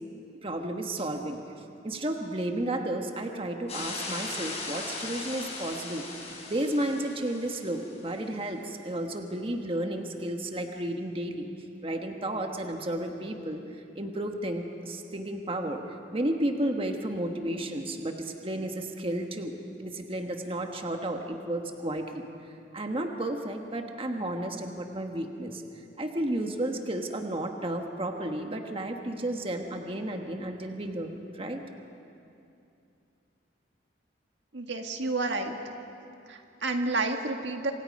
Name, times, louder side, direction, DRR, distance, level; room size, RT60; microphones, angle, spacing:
voice 1, 0.4-1.4 1.8-6.1 6.5-11.5 11.8-13.6 13.9-19.5 19.8-22.2 22.7-25.6 26.0-31.6, right 1 dB, 30° right, 4 dB, 1.3 m, -32 dB
sound 1, 3.7-7.9, left 3 dB, 35° left, 5.7 m, -38 dB
voice 2, 34.5-35.6 36.3-37.7, right 3 dB, 80° right, 4 dB, 1.8 m, -30 dB
27.0 x 25.5 x 5.4 m, 2.7 s
head